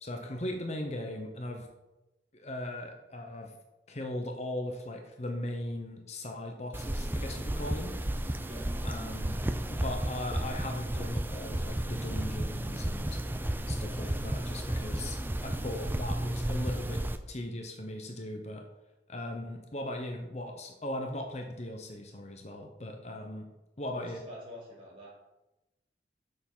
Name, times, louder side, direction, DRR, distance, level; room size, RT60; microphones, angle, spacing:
voice 1, 0.0-1.7 2.3-3.6 3.9-8.0 8.8-9.4 9.7-13.2 13.7-17.0 17.3-18.6 19.1-23.5 23.8-24.2, left 1 dB, 40° left, 3 dB, 0.9 m, -38 dB
sound 1, 6.7-17.2, right 1 dB, 10° right, 0.4 m, -33 dB
voice 2, 23.9-25.1, left 1 dB, 30° right, -5 dB, 3.6 m, -46 dB
6.9 x 6.7 x 5.6 m, 1.0 s
head